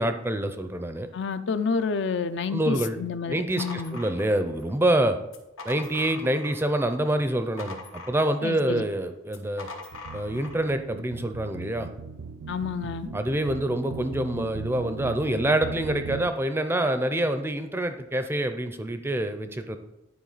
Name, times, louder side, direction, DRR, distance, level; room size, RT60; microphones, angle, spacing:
voice 1, 0.0-1.1 2.5-3.0 3.3-5.2 5.7-7.8 8.1-9.7 10.1-11.9 13.1-19.8, right 1 dB, 10° right, 8 dB, 0.4 m, -26 dB
voice 2, 1.1-4.0 8.4-8.8 12.5-13.1, left 5 dB, 60° left, 11 dB, 0.4 m, -29 dB
sound 1, 3.6-4.7 5.2-6.7 7.0-8.6 9.3-10.6, left 3 dB, 90° left, 1.2 m, -42 dB
sound 2, 9.9-16.3, right 4 dB, 85° right, 0.4 m, -39 dB
10.0 x 4.8 x 4.0 m, 0.89 s
head